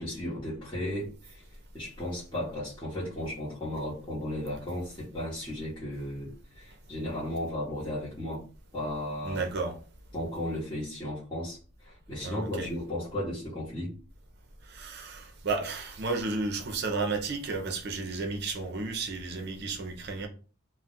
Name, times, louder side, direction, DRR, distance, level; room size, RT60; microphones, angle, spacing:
voice 1, 0.0-1.4 1.7-8.4 8.7-9.4 10.1-13.9, left 1 dB, 20° left, 0.9 m, -35 dB
voice 2, 9.2-9.8 12.2-12.7 14.7-20.3, right 3 dB, 50° right, 0.6 m, -33 dB
2.3 x 2.1 x 3.8 m
head